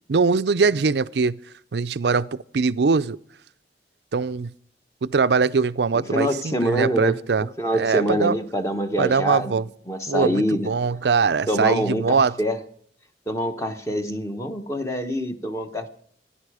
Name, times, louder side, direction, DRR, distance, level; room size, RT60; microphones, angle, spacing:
voice 1, 0.1-1.4 1.7-3.2 4.1-4.5 5.0-7.5 7.7-8.4 9.0-9.7 10.1-12.3, right 4 dB, 70° right, 0.5 m, -22 dB
voice 2, 5.9-7.2 7.6-10.7 11.5-12.6 13.3-15.9, equal, 15° left, 1.1 m, -25 dB
25.5 x 10.0 x 4.9 m
head